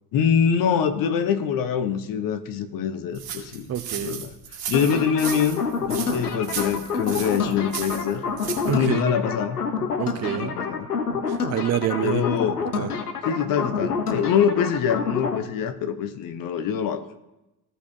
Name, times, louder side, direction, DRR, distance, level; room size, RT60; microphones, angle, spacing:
voice 1, 0.1-3.7 4.0-4.3 4.7-8.2 8.7-9.6 10.1-10.9 12.0-12.6 13.2-17.0, left 7 dB, 50° left, 9 dB, 1.0 m, -24 dB
sound 1, 3.1-8.8, right 8 dB, 55° right, 2.1 m, -35 dB
voice 2, 3.7-4.2 8.7-9.0 10.0-10.6 11.3-12.2 12.7-12.9, right 11 dB, 35° right, 11 dB, 0.7 m, -27 dB
sound 2, 4.7-15.4, left 5 dB, 90° left, 0.8 m, -28 dB
15.5 x 5.5 x 2.7 m, 0.97 s
figure-of-eight pair, 55°, 45 cm